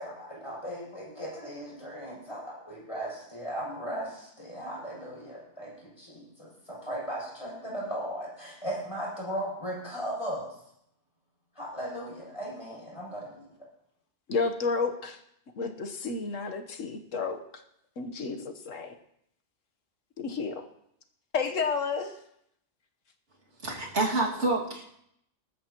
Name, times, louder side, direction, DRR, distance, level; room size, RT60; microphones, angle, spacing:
voice 1, 0.0-10.6 11.5-13.5, right 1 dB, 25° left, -5 dB, 7.5 m, -37 dB
voice 2, 14.3-15.2 15.6-17.4 18.0-18.9 20.2-20.6 21.3-22.2, left 4 dB, 85° left, 5 dB, 1.6 m, -31 dB
voice 3, 23.6-25.0, right 2 dB, 65° right, -2 dB, 2.7 m, -28 dB
19.5 x 13.5 x 3.0 m, 0.75 s
omnidirectional pair, 1.3 m